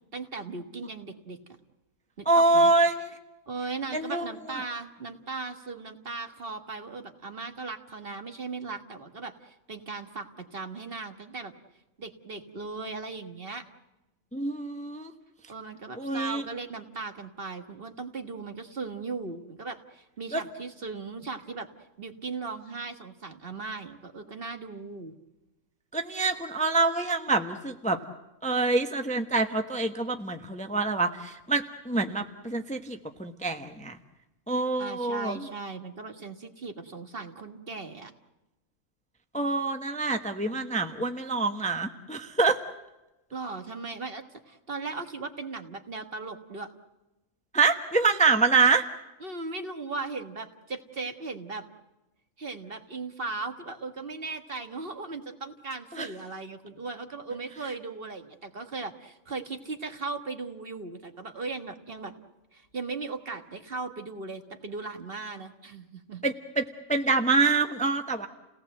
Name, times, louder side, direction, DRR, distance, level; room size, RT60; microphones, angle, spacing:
voice 1, 0.1-1.4 2.2-2.7 3.5-11.5 12.0-13.7 15.5-21.7 22.0-25.1 34.5-38.1 43.3-46.7 49.2-51.6 52.4-62.1 62.5-66.2, right 3 dB, 45° right, 7 dB, 1.8 m, -38 dB
voice 2, 2.3-3.1 3.9-4.6 14.3-15.1 15.9-16.4 20.3-20.4 25.9-28.0 28.4-34.0 34.5-35.5 39.3-42.6 47.5-48.8 55.9-56.1 66.2-68.3, right 3 dB, 5° left, 6 dB, 1.0 m, -26 dB
29.5 x 18.0 x 7.8 m, 1.0 s
omnidirectional pair, 1.4 m